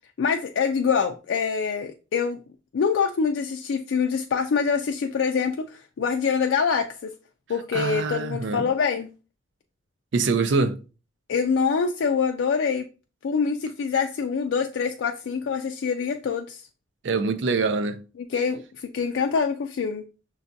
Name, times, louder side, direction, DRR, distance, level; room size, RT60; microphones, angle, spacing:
voice 1, 0.2-2.4 2.7-7.1 7.5-9.1 11.3-12.9 13.2-16.6 18.2-20.0, left 6 dB, 80° left, 0.4 m, -25 dB
voice 2, 7.7-8.7 10.1-10.8 17.0-18.0, right 4 dB, 75° right, 0.5 m, -24 dB
5.7 x 2.3 x 2.6 m
head